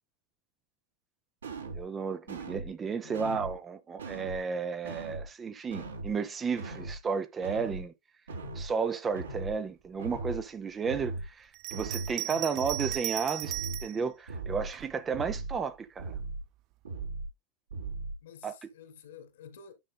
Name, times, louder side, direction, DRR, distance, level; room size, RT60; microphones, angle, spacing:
sound 1, 1.4-1.8 2.3-2.7 3.1-3.6 4.0-4.4 4.8-5.3 5.7-6.1 6.6-7.0 7.4-7.8 8.3-8.7 9.1-9.6 10.0-10.4 10.9-11.3 11.7-12.1 12.6-13.0 13.4-13.9 14.3-14.7 15.1-15.6 16.0-16.4 16.9-17.3 17.7-18.2, right 3 dB, 70° right, 3.2 m, -38 dB
voice 1, 1.6-7.9 8.5-13.5 13.8-16.2 18.4-18.5, right 5 dB, 20° right, 0.8 m, -33 dB
voice 2, 3.0-3.5 12.3-12.5 18.2-19.7, left 7 dB, 60° left, 2.0 m, -48 dB
Bell, 11.5-14.0 14.7-15.6, right 18 dB, 40° right, 0.3 m, -37 dB
9.9 x 6.4 x 2.2 m
figure-of-eight pair, 90°, 0 cm